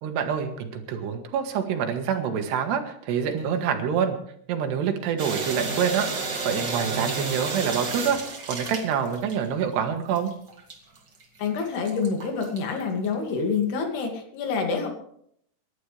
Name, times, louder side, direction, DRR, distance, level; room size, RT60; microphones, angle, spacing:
voice 1, 0.0-4.2 4.5-6.1 6.4-8.2 8.5-10.3, right 7 dB, 90° right, 6 dB, 3.7 m, -26 dB
sound 1, 5.2-9.7 10.2-13.1, right 4 dB, 35° right, 2.1 m, -32 dB
voice 2, 11.4-14.9, left 5 dB, 75° left, 3 dB, 4.3 m, -27 dB
27.5 x 11.5 x 3.4 m, 0.68 s
omnidirectional pair, 4.7 m